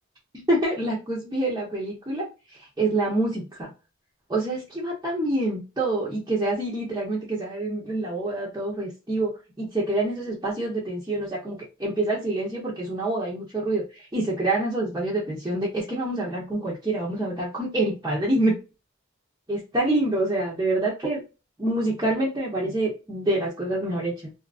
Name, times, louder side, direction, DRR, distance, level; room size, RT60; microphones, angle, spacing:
voice 1, 0.3-2.3 2.8-3.7 4.3-9.3 9.6-13.8 14.1-18.6 19.5-21.2 21.6-24.3, right 2 dB, 15° right, -7 dB, 0.8 m, -26 dB
2.8 x 2.4 x 2.4 m, 0.30 s
head